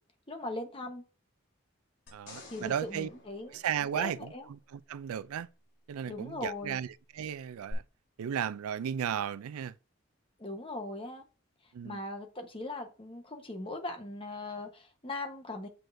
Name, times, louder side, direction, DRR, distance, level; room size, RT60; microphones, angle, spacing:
voice 1, 0.3-1.0 2.5-3.6 3.9-4.5 6.1-6.8 10.4-11.2 11.8-15.7, left 2 dB, 25° left, 1.1 m, -39 dB
sound 1, 2.1-4.6 7.7-7.8, left 2 dB, 60° left, 2.6 m, -52 dB
voice 2, 2.1-3.1 3.5-5.5 5.9-7.8 8.2-9.8 11.7-12.0, right 8 dB, 90° right, 0.4 m, -35 dB
7.7 x 6.5 x 2.6 m
head